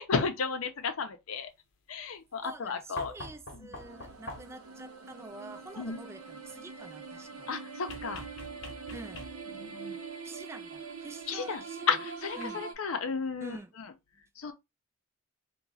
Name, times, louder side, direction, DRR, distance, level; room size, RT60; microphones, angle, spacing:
voice 1, 0.0-1.5 1.9-3.1 3.5-3.7 5.8-6.0 7.5-8.3 9.5-10.0 11.3-13.9 14.4-14.5, left 5 dB, 85° left, 0.6 m, -33 dB
voice 2, 2.4-7.5 8.9-9.3 10.2-11.9 12.4-12.6 13.4-13.7, right 2 dB, 15° right, 0.3 m, -47 dB
sound 1, 3.0-4.7 7.9-9.6 11.2-11.3, left 1 dB, 65° left, 0.9 m, -44 dB
sound 2, 3.8-12.7, right 5 dB, 85° right, 0.7 m, -43 dB
2.8 x 2.3 x 4.0 m
head